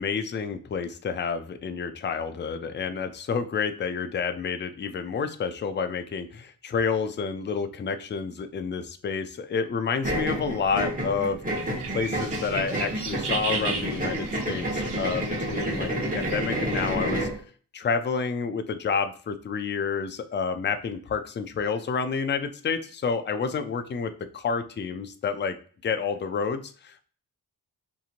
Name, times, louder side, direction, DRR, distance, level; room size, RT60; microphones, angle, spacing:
voice 1, 0.0-11.4 11.9-17.3 17.7-25.6 25.8-27.1, left 5 dB, 30° left, 8 dB, 0.4 m, -29 dB
sound 1, 10.0-17.4, right 1 dB, 20° right, 1.0 m, -29 dB
sound 2, 11.5-16.9, right 4 dB, 80° right, 0.7 m, -36 dB
2.8 x 2.6 x 2.4 m, 0.42 s
cardioid pair, 70°, 41 cm